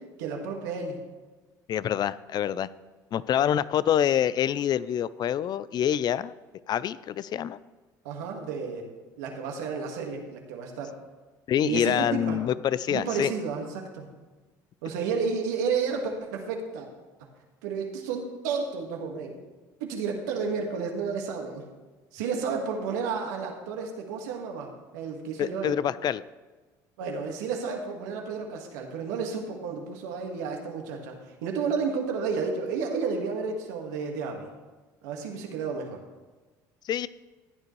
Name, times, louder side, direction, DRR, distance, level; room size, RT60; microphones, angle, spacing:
voice 1, 0.2-1.0 8.0-8.9 9.2-10.9 11.6-12.4 12.9-14.1 14.8-16.9 17.6-19.4 19.8-21.6 22.1-25.8 27.0-34.5 35.0-36.0, right 5 dB, 85° right, 2 dB, 1.8 m, -31 dB
voice 2, 1.7-2.7 3.1-6.3 6.7-7.6 11.5-13.3 25.4-26.2 36.8-37.1, left 10 dB, 50° left, 18 dB, 0.5 m, -26 dB
15.5 x 9.2 x 3.2 m, 1.3 s
supercardioid pair, 80°, 9 cm